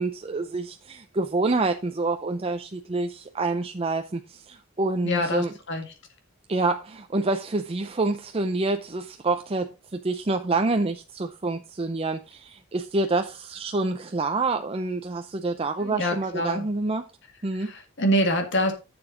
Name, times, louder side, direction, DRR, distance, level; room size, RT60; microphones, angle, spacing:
voice 1, 0.0-5.5 6.5-17.0 17.4-17.7, right 3 dB, 25° right, 0.6 m, -27 dB
voice 2, 5.0-5.9 15.8-16.7 17.5-18.7, equal, 55° left, 1.8 m, -26 dB
11.0 x 7.0 x 3.8 m
head